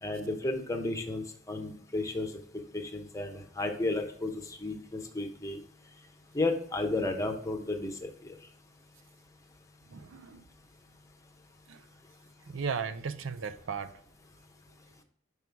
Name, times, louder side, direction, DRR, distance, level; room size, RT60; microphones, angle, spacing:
voice 1, 0.0-2.3 2.7-5.6 6.3-8.1, left 2 dB, 15° left, 4 dB, 0.8 m, -33 dB
voice 2, 9.9-10.4 11.7-11.8 12.5-13.9, right 5 dB, 70° right, 11 dB, 0.5 m, -36 dB
5.3 x 4.8 x 4.6 m, 0.67 s
head